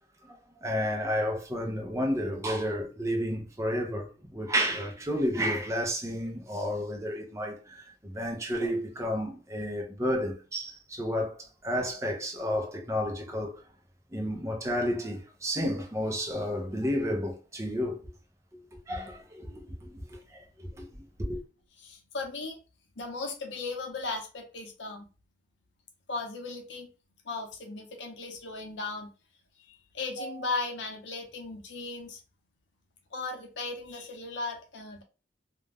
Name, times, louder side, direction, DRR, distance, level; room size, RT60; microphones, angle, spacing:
voice 1, 0.2-13.6 14.1-18.0 18.9-21.4, equal, 15° right, 0.5 m, -31 dB
voice 2, 21.8-22.6 23.0-25.1 26.1-26.9 27.2-29.1 29.7-32.2 33.1-35.0, left 3 dB, 80° left, 0.6 m, -36 dB
2.4 x 2.1 x 3.3 m
head